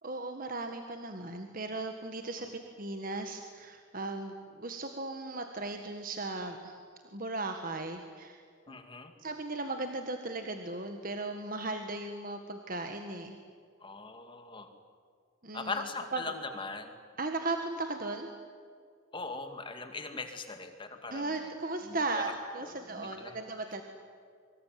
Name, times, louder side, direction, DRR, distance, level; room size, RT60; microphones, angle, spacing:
voice 1, 0.0-6.8 7.1-8.8 9.2-13.4 15.4-15.8 16.1-16.3 17.2-18.3 21.1-23.8, right 2 dB, 40° right, 5 dB, 1.7 m, -37 dB
voice 2, 8.7-9.1 13.8-14.7 15.5-16.9 19.1-21.5 21.8-22.3 22.6-23.4, left 3 dB, 25° left, 6 dB, 2.4 m, -40 dB
24.5 x 24.5 x 9.4 m, 2.2 s
head